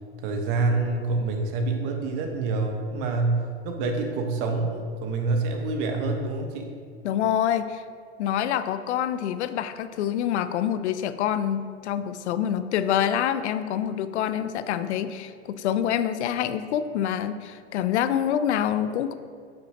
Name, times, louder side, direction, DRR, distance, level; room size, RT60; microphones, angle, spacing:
voice 1, 0.2-6.7, right 3 dB, 55° right, 3 dB, 1.2 m, -27 dB
voice 2, 7.0-7.8 8.2-19.1, left 10 dB, 75° left, 12 dB, 0.5 m, -26 dB
8.6 x 6.0 x 2.8 m, 2.1 s
hypercardioid pair, 105°, 34 cm